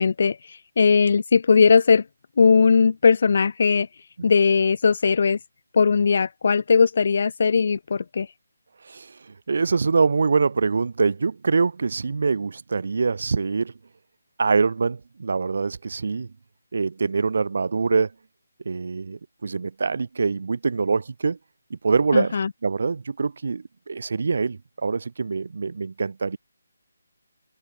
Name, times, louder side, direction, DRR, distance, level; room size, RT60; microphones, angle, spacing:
voice 1, 0.0-2.0 2.4-3.9 4.2-5.4 5.7-8.3 22.1-22.5, left 5 dB, 55° left, 3.7 m, -19 dB
voice 2, 8.8-13.7 14.4-16.3 16.7-18.1 18.7-21.4 21.7-26.4, right 4 dB, 60° right, 7.0 m, -24 dB
figure-of-eight pair, 160°, 0 cm